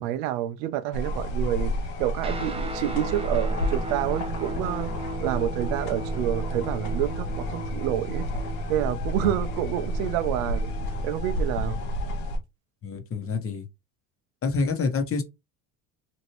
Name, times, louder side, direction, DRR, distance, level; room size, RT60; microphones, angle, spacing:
voice 1, 0.0-1.7 2.0-4.9 5.2-8.2 8.7-10.7 11.0-11.8, right 13 dB, 80° right, 0.5 m, -28 dB
sound 1, 0.9-12.4, equal, 70° left, 0.9 m, -30 dB
Guitar, 2.2-11.8, right 2 dB, 15° right, 0.5 m, -37 dB
voice 2, 12.8-13.7 14.4-15.2, left 4 dB, 35° left, 0.9 m, -27 dB
2.9 x 2.6 x 2.9 m
supercardioid pair, 85°, 41 cm